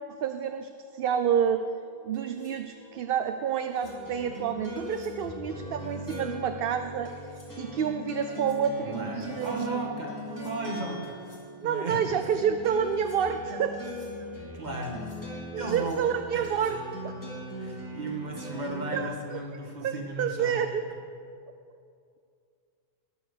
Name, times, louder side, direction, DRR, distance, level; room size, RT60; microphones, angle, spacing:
voice 1, 0.1-1.6 2.0-7.1 7.6-10.0 11.6-13.8 15.5-16.8 17.0-17.1 18.5-18.6 18.9-19.4 19.8-20.8, right 8 dB, 65° right, 8 dB, 0.7 m, -29 dB
sound 1, 1.6-13.9, left 2 dB, 55° left, 1.9 m, -53 dB
sound 2, 2.1-2.6 3.5-4.0 4.8-5.2 5.8-6.2 7.0-7.5 8.2-8.6 9.2-9.6 10.2-10.6 11.0-11.5 11.9-12.4 12.8-13.4 13.7-14.2 14.8-15.3 15.7-16.1 16.4-16.7, left 1 dB, 80° left, 3.5 m, -58 dB
sound 3, 3.8-19.0, left 1 dB, 15° left, 3.0 m, -40 dB
voice 2, 8.8-11.2 11.6-12.1 14.5-15.1 15.6-16.5 17.6-20.6, right 2 dB, 45° right, 0 dB, 1.9 m, -35 dB
20.0 x 7.1 x 6.7 m, 2.4 s
omnidirectional pair, 1.1 m